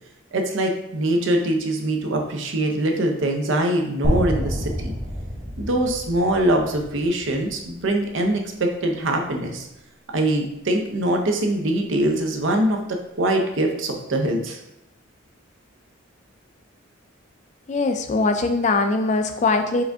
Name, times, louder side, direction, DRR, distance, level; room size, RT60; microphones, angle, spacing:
voice 1, 0.3-4.9 5.6-9.7 10.1-14.6, right 1 dB, 65° right, 3 dB, 0.6 m, -23 dB
sound 1, 4.0-8.1, equal, 40° right, 1.0 m, -28 dB
voice 2, 17.7-19.8, left 3 dB, 35° left, 7 dB, 0.3 m, -21 dB
4.8 x 2.6 x 3.4 m, 0.82 s
head